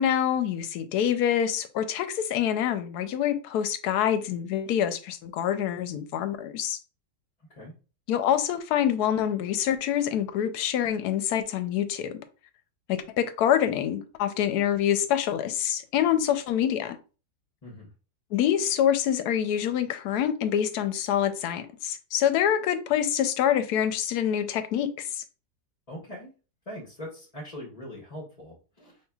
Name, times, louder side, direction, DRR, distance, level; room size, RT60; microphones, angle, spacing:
voice 1, 0.0-6.8 8.1-12.1 12.9-17.0 18.3-25.2, left 10 dB, 75° left, 1.1 m, -26 dB
voice 2, 7.4-7.7 17.6-17.9 25.9-26.3 26.7-29.0, equal, 30° left, 0.9 m, -41 dB
5.5 x 3.0 x 2.3 m
omnidirectional pair, 1.7 m